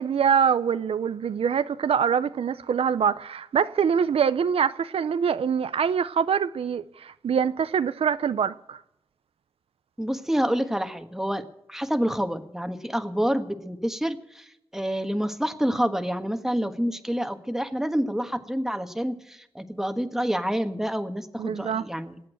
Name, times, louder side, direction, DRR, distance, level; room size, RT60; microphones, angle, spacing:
voice 1, 0.0-8.8 21.4-21.8, right 7 dB, 90° right, 0.5 m, -24 dB
voice 2, 10.0-22.2, equal, 5° right, 1.5 m, -28 dB
19.5 x 8.6 x 7.8 m
cardioid pair, 55°, 10 cm